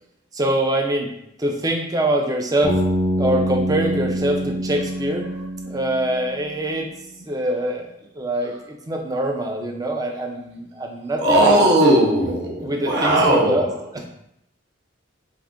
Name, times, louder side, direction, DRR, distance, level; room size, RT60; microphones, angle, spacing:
voice 1, 0.3-1.1 1.4-2.8 3.2-5.3 5.6-6.9 7.2-7.9 8.2-11.7 12.6-14.1, right 1 dB, 20° right, 2 dB, 0.3 m, -24 dB
Bass guitar, 2.6-6.6, right 1 dB, 10° left, 0.7 m, -25 dB
voice 2, 11.2-13.6, right 1 dB, 60° right, -2 dB, 0.6 m, -17 dB
2.5 x 2.4 x 3.5 m, 0.79 s
head